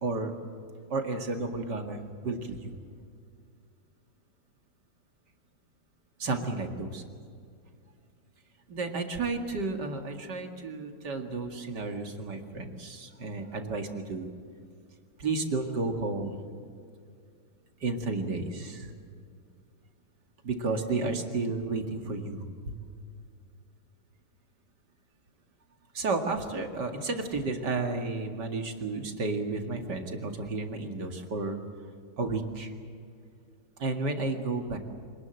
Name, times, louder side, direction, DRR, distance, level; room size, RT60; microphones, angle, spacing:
voice 1, 0.0-0.3 0.9-2.8 6.2-7.0 8.7-14.3 15.2-16.5 17.8-18.9 20.4-22.8 25.9-31.6 32.2-32.7 33.8-34.8, right 3 dB, 60° right, 4 dB, 2.7 m, -32 dB
26.5 x 19.5 x 7.9 m, 2.2 s
omnidirectional pair, 2.2 m